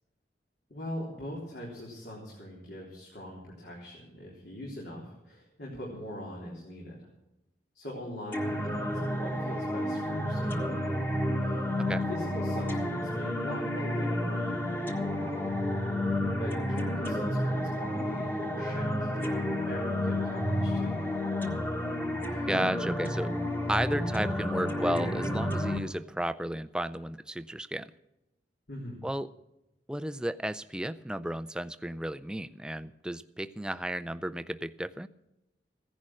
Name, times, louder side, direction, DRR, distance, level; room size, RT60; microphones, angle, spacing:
voice 1, 0.7-7.1 7.7-10.7 11.4-11.6 11.8-15.6 16.4-21.0 22.2-22.5 28.7-29.0, left 1 dB, 70° left, -3 dB, 3.8 m, -42 dB
sound 1, 8.3-25.8, left 1 dB, 15° left, 1.5 m, -31 dB
voice 2, 22.4-23.3 23.7-27.9 29.0-29.3 29.9-35.1, right 1 dB, 5° right, 12 dB, 0.4 m, -33 dB
16.0 x 10.5 x 6.3 m, 0.91 s
head